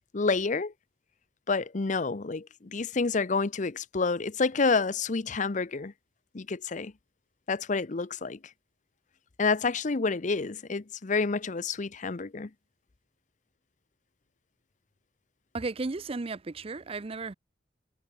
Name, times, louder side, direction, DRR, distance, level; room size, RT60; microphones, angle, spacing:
voice 1, 0.1-0.7 1.5-5.9 6.3-6.9 7.5-8.4 9.4-12.5, left 4 dB, 45° left, 0.7 m, -28 dB
voice 2, 15.5-17.3, right 3 dB, 30° right, 0.5 m, -34 dB
head